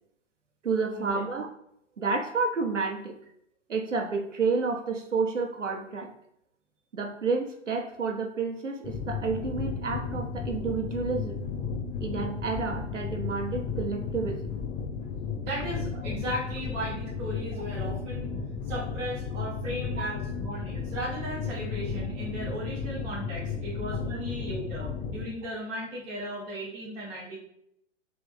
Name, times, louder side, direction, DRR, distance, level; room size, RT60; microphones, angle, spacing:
voice 1, 0.6-1.5 2.0-3.2 3.7-6.1 6.9-11.4 12.0-14.6 20.0-20.1 24.8-24.9 25.4-25.5, right 4 dB, 80° right, 2 dB, 1.0 m, -30 dB
sound 1, 8.8-25.2, left 5 dB, 25° left, 0.8 m, -34 dB
voice 2, 15.4-18.3 18.7-27.4, right 1 dB, 5° right, -6 dB, 0.3 m, -36 dB
3.5 x 3.2 x 4.8 m, 0.73 s
figure-of-eight pair, 120°, 37 cm